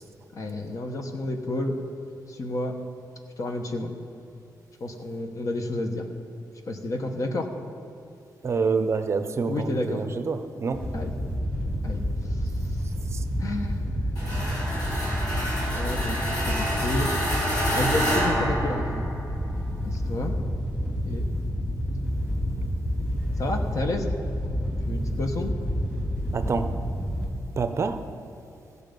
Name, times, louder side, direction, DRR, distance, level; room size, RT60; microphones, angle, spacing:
voice 1, 0.3-1.7 2.3-2.7 3.4-3.9 4.8-6.1 6.7-7.5 9.4-10.0 10.9-11.1 11.8-12.0 12.3-12.5 13.4-14.1 14.8-14.9 15.7-17.1 17.7-19.0 19.8-20.3 21.1-21.3 23.4-24.1 24.9-25.5, left 2 dB, 50° left, 4 dB, 1.1 m, -30 dB
voice 2, 8.4-10.9 13.1-13.2 26.3-26.7 27.6-28.0, right 4 dB, 40° right, 9 dB, 0.5 m, -27 dB
Wind / Boat Water vehicle, 10.7-27.2, equal, 15° left, 3.0 m, -29 dB
sound 1, 14.1-19.4, equal, 65° left, 3.0 m, -28 dB
16.5 x 6.7 x 5.2 m, 2.5 s
wide cardioid pair, 140°, 7 cm